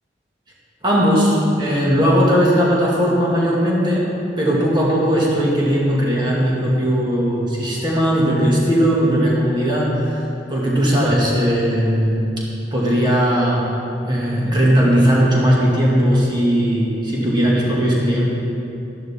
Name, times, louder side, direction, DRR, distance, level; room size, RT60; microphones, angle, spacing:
voice 1, 0.8-10.2 10.5-12.2 12.7-13.6 14.1-18.3, equal, 25° right, -5 dB, 2.1 m, -18 dB
13.0 x 11.5 x 3.7 m, 2.8 s
head